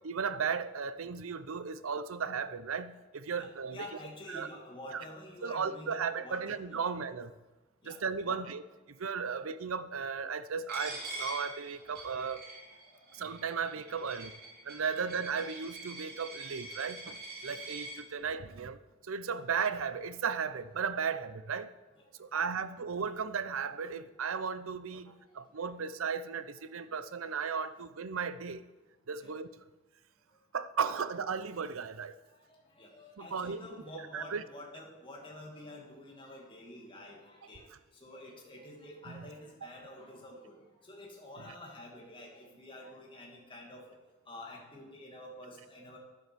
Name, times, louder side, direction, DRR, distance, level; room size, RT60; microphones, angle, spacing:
voice 1, 0.0-3.9 4.3-4.5 4.9-5.0 5.4-7.3 7.8-8.6 8.9-12.4 13.1-14.3 14.6-21.7 22.2-28.7 29.1-29.5 30.5-32.2 33.2-33.7 33.9-34.4 39.1-39.2, right 6 dB, 75° right, 0.6 m, -35 dB
voice 2, 3.4-6.9 7.8-8.4 9.3-9.4 12.7-12.8 13.3-13.4 15.0-15.1 17.5-17.7 22.0-22.1 22.3-22.4 25.6-25.7 29.2-29.3 32.3-37.7 38.0-43.8 44.3-46.0, left 1 dB, 25° left, 2.3 m, -49 dB
Coin (dropping), 10.7-18.0, right 2 dB, 50° right, 2.8 m, -44 dB
11.0 x 7.7 x 6.8 m
head